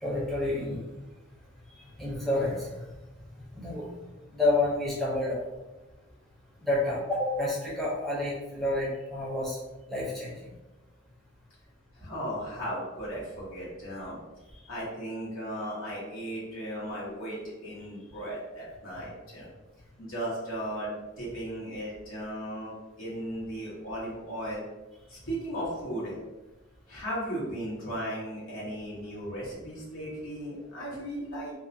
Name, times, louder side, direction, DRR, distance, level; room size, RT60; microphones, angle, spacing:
voice 1, 0.0-0.8 1.8-2.7 3.5-3.9 4.3-5.4 6.6-9.6 9.9-10.4, left 2 dB, ahead, -7 dB, 0.5 m, -29 dB
voice 2, 12.0-14.2 14.7-19.5 20.0-24.6 25.1-26.2 26.9-31.5, equal, 85° left, -7 dB, 1.0 m, -36 dB
2.3 x 2.0 x 2.6 m, 1.1 s
head